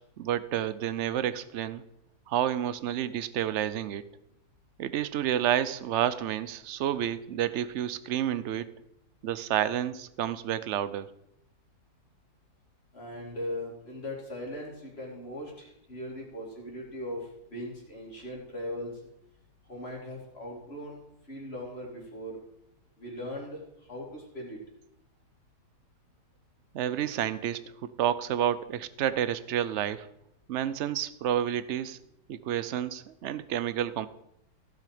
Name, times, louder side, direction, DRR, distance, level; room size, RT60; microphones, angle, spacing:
voice 1, 0.2-1.8 2.3-4.0 4.8-8.7 9.2-11.1 26.7-30.1 30.5-32.0 32.3-34.1, right 10 dB, 70° right, 14 dB, 0.6 m, -30 dB
voice 2, 12.9-17.2 17.5-18.9 19.7-22.3 23.0-23.6 23.9-24.6, left 1 dB, 35° left, -2 dB, 3.2 m, -39 dB
16.0 x 6.5 x 5.0 m, 0.79 s
omnidirectional pair, 1.9 m